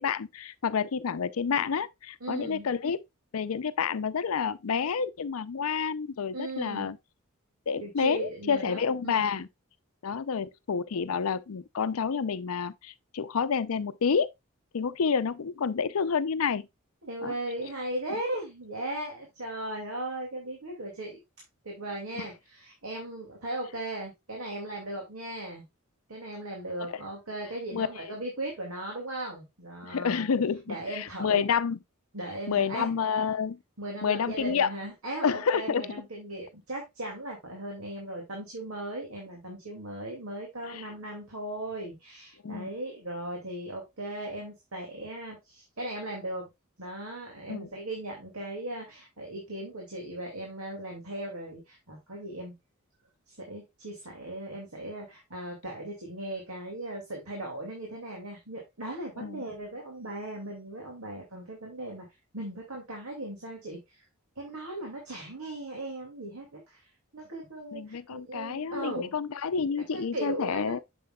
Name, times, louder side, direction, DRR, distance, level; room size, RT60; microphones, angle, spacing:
voice 1, 0.0-3.0 3.3-7.0 7.7-9.5 10.0-14.3 14.7-16.7 17.2-17.3 22.2-22.3 27.7-27.9 29.8-31.8 32.5-33.6 34.0-34.7 35.2-35.8 40.6-40.8 42.4-42.7 47.5-47.7 59.2-59.4 67.7-70.8, left 6 dB, 80° left, 0.5 m, -29 dB
voice 2, 2.2-2.7 6.3-6.9 7.8-9.4 17.0-21.2 21.6-25.7 26.1-30.2 30.7-31.4 32.1-32.9 33.8-46.4 46.8-52.6 53.3-62.1 62.3-64.0 64.4-69.2 69.6-70.8, right 1 dB, 90° right, 2.3 m, -38 dB
7.7 x 6.8 x 2.3 m
head